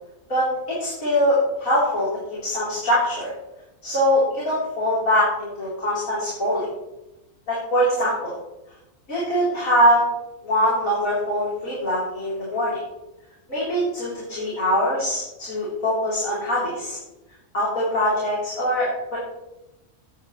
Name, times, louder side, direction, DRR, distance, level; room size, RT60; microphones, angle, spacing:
voice 1, 0.3-2.1 2.4-3.3 3.8-6.7 7.5-8.4 9.1-10.0 10.4-12.8 13.5-17.0 17.5-19.2, equal, 75° left, -8 dB, 4.2 m, -22 dB
15.0 x 10.0 x 3.2 m, 0.96 s
omnidirectional pair, 1.5 m